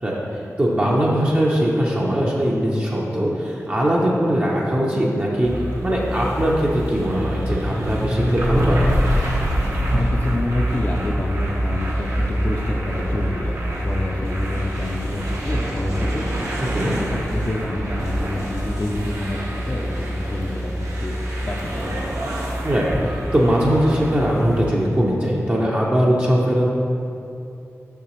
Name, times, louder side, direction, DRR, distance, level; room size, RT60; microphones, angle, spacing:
voice 1, 0.0-5.5 5.8-8.8 16.6-16.9 22.6-26.6, equal, 30° right, -5 dB, 0.7 m, -20 dB
sound 1, 5.4-24.7, equal, 65° right, 1.2 m, -25 dB
voice 2, 9.9-21.2 21.4-22.3, left 1 dB, 35° left, -3 dB, 0.5 m, -28 dB
6.8 x 5.8 x 3.1 m, 2.7 s
wide cardioid pair, 75°, 6 cm